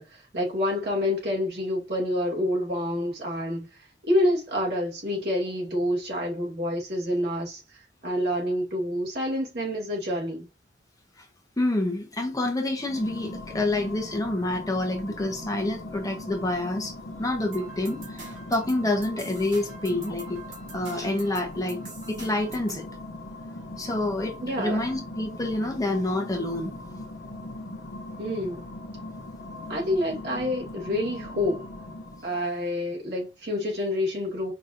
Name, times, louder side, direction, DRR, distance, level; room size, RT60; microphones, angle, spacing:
voice 1, 0.0-10.5 24.4-24.8 28.2-28.6 29.7-31.6 32.2-34.5, left 1 dB, 65° right, 2.4 m, -28 dB
voice 2, 11.6-16.9 17.2-20.4 20.7-21.8 22.1-22.9 23.8-26.8, left 2 dB, 20° left, 1.0 m, -28 dB
sound 1, 12.7-32.4, left 1 dB, 80° left, 0.9 m, -40 dB
sound 2, 17.5-22.9, right 4 dB, 85° right, 2.3 m, -46 dB
5.1 x 3.1 x 2.6 m
head